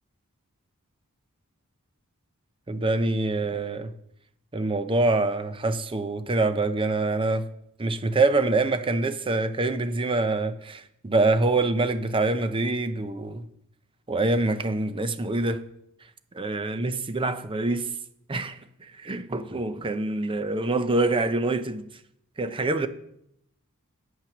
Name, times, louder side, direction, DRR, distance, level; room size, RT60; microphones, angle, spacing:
voice 1, 2.7-3.9 4.5-7.5 7.8-13.4 14.1-15.6 16.3-17.9 18.3-21.9 22.4-22.9, right 2 dB, 25° right, 0.6 m, -25 dB
8.8 x 7.6 x 6.0 m
head